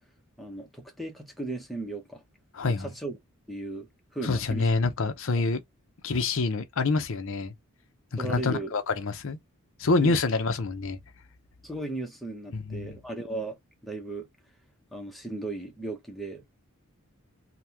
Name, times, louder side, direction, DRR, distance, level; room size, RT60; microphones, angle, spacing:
voice 1, 0.4-2.2 2.6-3.2 3.5-3.9 4.1-4.7 8.2-8.7 10.0-10.2 11.6-13.6 13.8-14.3 14.9-16.4, right 2 dB, ahead, 0.8 m, -36 dB
voice 2, 2.5-2.9 4.2-5.6 6.0-7.5 8.1-9.4 9.8-11.0 12.5-13.0, left 3 dB, 60° left, 0.6 m, -27 dB
3.4 x 2.3 x 2.7 m
head